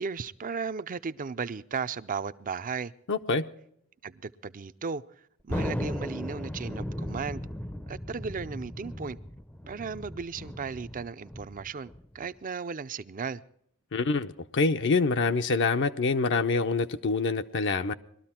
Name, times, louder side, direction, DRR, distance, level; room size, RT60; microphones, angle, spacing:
voice 1, 0.0-2.9 4.0-7.5 7.9-9.2 9.6-13.4, right 5 dB, 40° right, 0.5 m, -35 dB
voice 2, 3.1-3.5 13.9-17.9, left 4 dB, 55° left, 0.6 m, -26 dB
Thunder, 5.5-12.3, equal, 5° left, 0.6 m, -36 dB
20.5 x 13.0 x 4.3 m
head